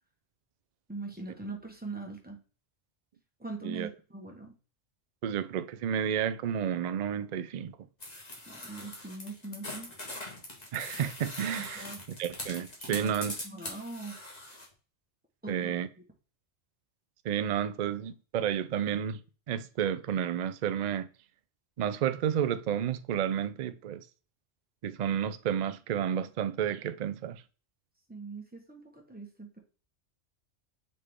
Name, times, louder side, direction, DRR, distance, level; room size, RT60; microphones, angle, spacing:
voice 1, 0.9-2.4 3.4-4.5 8.4-9.9 11.6-12.0 12.9-14.2 15.4-15.7 28.1-29.6, right 3 dB, 10° right, 1.3 m, -42 dB
voice 2, 5.2-7.8 10.7-11.9 12.2-13.3 15.5-15.9 17.2-19.2 19.5-21.1 21.8-24.0 24.8-27.4, right 9 dB, 55° right, 0.5 m, -31 dB
sound 1, 8.0-14.7, left 1 dB, 35° left, 1.8 m, -42 dB
6.5 x 4.0 x 3.6 m
omnidirectional pair, 1.2 m